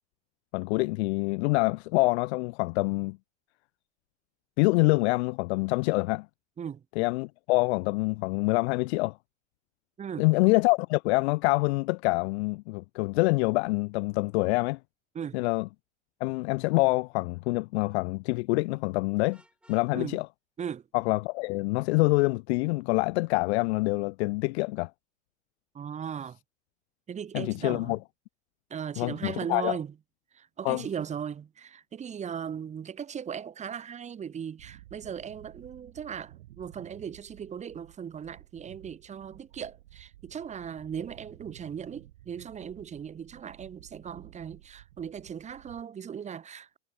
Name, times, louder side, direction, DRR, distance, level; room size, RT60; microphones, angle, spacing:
voice 1, 0.5-3.2 4.6-6.3 7.0-9.2 10.2-14.8 15.3-15.7 16.2-19.4 19.7-20.3 20.9-24.9 27.3-28.0 29.0-29.8 30.6-30.8, left 25 dB, 60° left, 0.5 m, -26 dB
Vehicle horn car horn honking, 19.3-19.9, right 1 dB, 5° right, 2.1 m, -61 dB
voice 2, 25.7-26.4 27.1-28.0 28.7-29.9 30.3-46.8, right 8 dB, 20° right, 0.9 m, -38 dB
sound 1, 34.6-45.8, right 15 dB, 80° right, 1.8 m, -53 dB
supercardioid pair, 120°, 36 cm